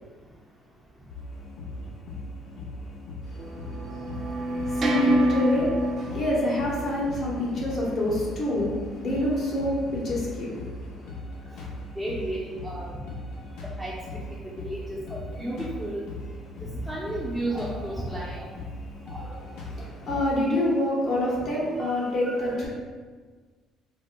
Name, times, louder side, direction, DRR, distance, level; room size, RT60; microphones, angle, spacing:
sound 1, 1.1-20.5, left 1 dB, 75° left, 0.5 m, -39 dB
voice 1, 3.2-11.1 19.6-22.7, left 1 dB, 55° left, -5 dB, 1.1 m, -27 dB
sound 2, 3.4-8.5, right 1 dB, 45° right, 0.4 m, -28 dB
voice 2, 12.0-12.9 13.8-14.2 14.6-16.0 16.6-18.5 19.1-19.3 21.8-21.9 22.2-22.5, right 1 dB, 5° left, -6 dB, 0.6 m, -33 dB
4.1 x 2.1 x 2.2 m, 1.4 s
supercardioid pair, 75°, 0 cm